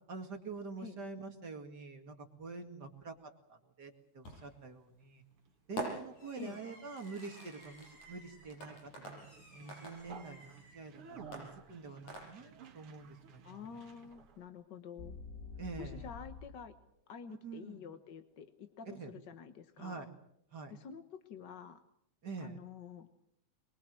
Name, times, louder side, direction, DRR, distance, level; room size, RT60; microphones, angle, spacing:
voice 1, 0.1-3.1 3.5-5.2 5.7-9.3 9.5-13.7 15.6-16.1 17.3-17.9 18.9-19.1 19.8-20.1 20.5-20.7 22.2-22.6, right 4 dB, 35° right, 4 dB, 2.4 m, -46 dB
Fireworks, 4.2-4.7 5.8-10.8 11.3-12.7, right 2 dB, 80° left, 8.5 m, -47 dB
Conversation, 5.0-14.5, right 5 dB, 55° right, 2.5 m, -56 dB
voice 2, 13.4-15.2 15.8-16.7 17.1-20.1 20.7-21.8 22.4-23.1, left 6 dB, 55° left, 9 dB, 1.3 m, -49 dB
sound 1, 15.0-16.7, left 5 dB, 35° left, 3.1 m, -47 dB
24.0 x 22.5 x 7.7 m, 0.73 s
omnidirectional pair, 3.3 m